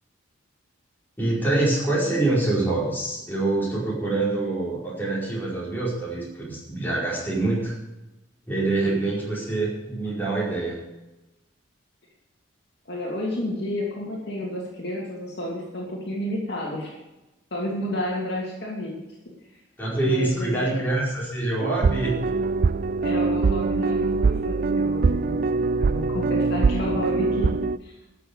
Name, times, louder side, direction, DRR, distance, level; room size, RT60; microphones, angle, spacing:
voice 1, 1.2-7.7 8.4-10.8 19.8-22.2, right 2 dB, 10° left, -6 dB, 4.8 m, -25 dB
voice 2, 12.9-16.9 17.5-19.0 19.2-19.3 20.0-20.9 23.0-25.4 25.7-27.9, left 1 dB, 55° left, -3 dB, 2.7 m, -31 dB
sound 1, 21.6-27.8, right 4 dB, 45° right, 0.3 m, -23 dB
13.0 x 6.8 x 8.0 m, 1.0 s
head